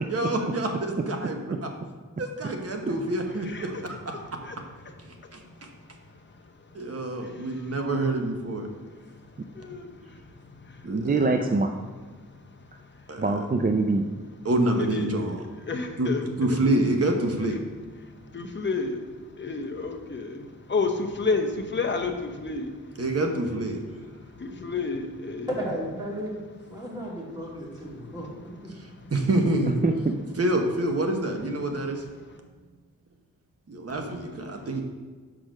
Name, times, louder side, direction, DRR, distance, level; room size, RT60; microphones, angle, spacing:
voice 1, 0.1-1.7 2.2-4.2 5.3-5.4 6.7-8.7 10.9-11.3 13.1-13.3 14.4-15.4 16.0-16.1 16.4-17.6 23.0-23.8 28.8-29.8 30.4-32.0 33.7-34.8, right 1 dB, 45° right, 1.1 m, -27 dB
voice 2, 4.1-4.6 4.8-7.8 9.1-10.9 11.4-11.5 12.2-13.0 14.7-15.1 15.7-16.5 17.4-17.6 18.0-23.0 24.3-25.5 28.7-29.1 34.6-34.7, left 4 dB, 35° left, 0.8 m, -33 dB
voice 3, 10.8-11.7 13.2-14.1 29.8-30.1, right 3 dB, 30° right, 0.4 m, -24 dB
voice 4, 25.6-26.3 26.7-28.3 28.6-28.7 31.2-31.3, equal, 10° right, 2.5 m, -34 dB
6.2 x 4.8 x 6.4 m
wide cardioid pair, 100°, 33 cm